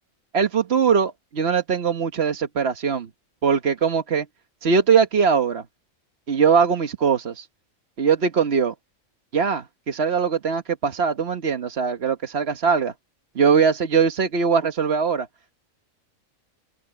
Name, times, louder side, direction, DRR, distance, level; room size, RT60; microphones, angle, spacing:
voice 1, 0.3-3.1 3.4-4.3 4.6-5.6 6.3-7.5 8.0-8.7 9.3-12.9 13.3-15.3, right 6 dB, 50° right, 1.3 m, -21 dB
omnidirectional pair, 1.4 m